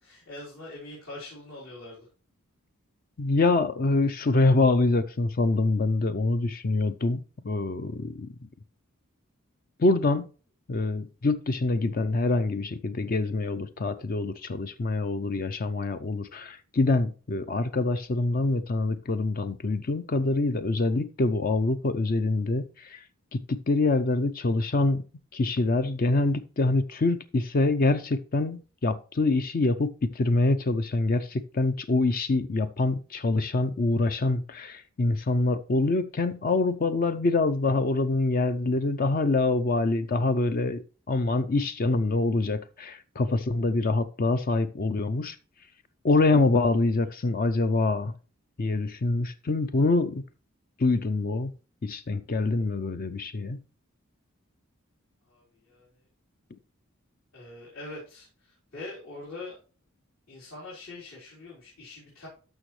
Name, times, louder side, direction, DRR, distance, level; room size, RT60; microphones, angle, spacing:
voice 1, 0.0-2.1 55.3-56.0 57.3-59.6 60.3-62.3, left 2 dB, 70° left, 4.1 m, -43 dB
voice 2, 3.2-8.3 9.8-10.3 10.7-23.0 23.3-25.0 25.3-40.8 41.1-45.4 46.0-48.1 48.6-50.2 50.8-51.5 51.8-53.6, left 2 dB, 40° left, 0.5 m, -25 dB
12.5 x 6.0 x 3.2 m
head